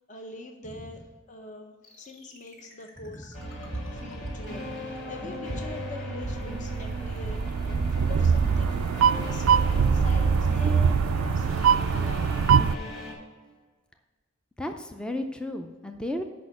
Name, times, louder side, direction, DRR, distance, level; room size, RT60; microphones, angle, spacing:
voice 1, 0.0-3.6 3.9-12.3, left 2 dB, 35° left, 4 dB, 0.7 m, -44 dB
sound 1, 1.8-7.1 7.3-7.4 7.7-7.8 8.0-8.1 8.4-8.5 8.7-8.8 9.1-9.2 9.5-9.6 10.0-10.1 10.5-10.6 10.9-11.0 11.4-11.5 11.9-12.0, equal, 80° left, 2.3 m, -50 dB
sound 2, 3.3-13.1, equal, 60° left, 2.3 m, -36 dB
sound 3, 6.2-12.7, right 6 dB, 85° right, 0.3 m, -23 dB
voice 2, 14.6-16.2, left 1 dB, 5° left, 5 dB, 0.4 m, -34 dB
6.3 x 5.5 x 6.9 m, 1.4 s
head